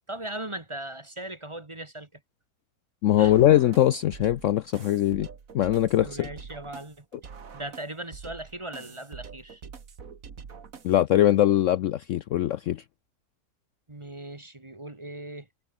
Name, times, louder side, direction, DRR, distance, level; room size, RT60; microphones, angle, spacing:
voice 1, 0.1-2.2 3.2-3.3 6.0-7.0 7.5-9.6 13.9-15.5, right 1 dB, 20° right, 1.4 m, -38 dB
voice 2, 3.0-5.3 5.5-6.3 10.8-12.8, left 12 dB, 70° left, 0.8 m, -21 dB
sound 1, 3.2-11.2, right 6 dB, 60° right, 2.1 m, -45 dB
omnidirectional pair, 1.7 m